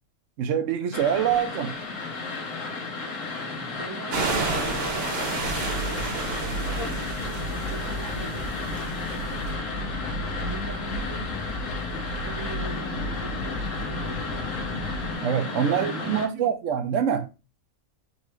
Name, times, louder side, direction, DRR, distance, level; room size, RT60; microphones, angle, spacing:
voice 1, 0.4-1.7 15.2-17.3, right 8 dB, 70° right, 0.9 m, -25 dB
sound 1, 0.9-16.3, left 3 dB, 65° left, 1.2 m, -33 dB
voice 2, 3.4-5.7 6.6-8.6 9.2-9.7 10.4-11.6 11.9-14.6 15.5-16.5, right 3 dB, 35° right, 0.3 m, -41 dB
sound 2, 4.1-9.5, right 3 dB, 50° right, 1.1 m, -31 dB
sound 3, 5.4-15.1, equal, 85° left, 1.1 m, -34 dB
3.9 x 3.1 x 3.0 m
omnidirectional pair, 1.5 m